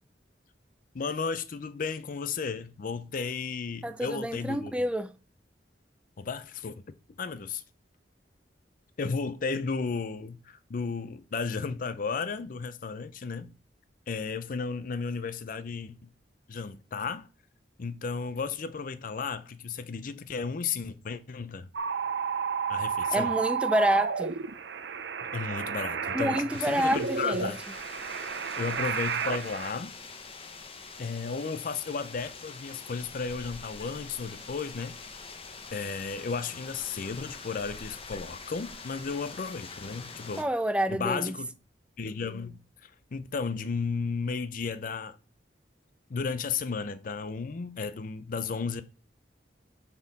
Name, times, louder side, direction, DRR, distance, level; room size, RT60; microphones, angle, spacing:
voice 1, 0.9-4.7 6.2-6.8 7.2-7.6 9.0-13.5 14.1-16.1 16.5-17.3 17.8-21.7 22.7-23.3 25.3-27.6 28.6-29.9 31.0-35.0 35.7-40.5 40.9-41.5 42.0-45.2 46.1-48.8, left 5 dB, 50° left, 0.5 m, -34 dB
voice 2, 3.8-5.1 23.1-24.4 26.1-27.6 40.4-41.3, equal, 5° right, 0.4 m, -28 dB
sound 1, 21.7-29.7, right 6 dB, 85° right, 0.6 m, -32 dB
sound 2, 26.5-40.4, left 4 dB, 35° left, 0.9 m, -45 dB
8.9 x 4.3 x 4.1 m
head